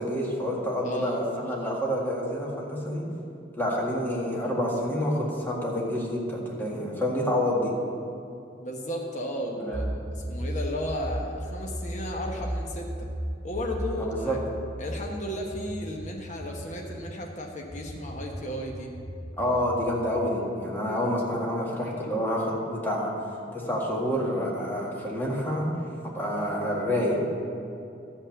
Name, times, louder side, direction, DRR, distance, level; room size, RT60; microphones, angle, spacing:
voice 1, 0.0-3.0 3.6-7.7 9.6-9.9 14.0-14.4 19.4-23.1 23.5-25.7 26.0-27.2, equal, 10° left, -3 dB, 1.8 m, -28 dB
voice 2, 0.8-1.2 8.6-9.8 10.1-13.1 13.4-14.4 14.8-19.0, equal, 40° left, 0 dB, 1.1 m, -34 dB
sound 1, 9.7-17.0 17.7-20.2, right 1 dB, 20° right, 0.8 m, -36 dB
12.5 x 5.8 x 7.3 m, 2.6 s
head